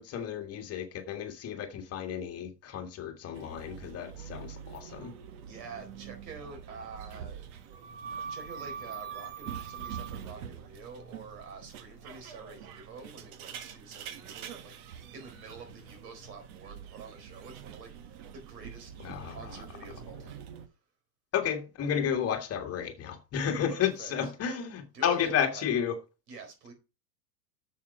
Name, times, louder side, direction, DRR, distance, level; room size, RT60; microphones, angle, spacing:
voice 1, 0.0-5.1 19.0-19.6 21.3-26.0, left 8 dB, 30° left, 1.8 m, -32 dB
sound 1, 3.3-20.7, right 8 dB, 60° right, 1.5 m, -44 dB
voice 2, 5.4-7.5 8.2-18.9 19.2-20.4 23.7-24.3 24.9-25.6 26.3-26.7, right 4 dB, 80° right, 4.3 m, -47 dB
7.3 x 7.1 x 5.5 m
supercardioid pair, 135°, 49 cm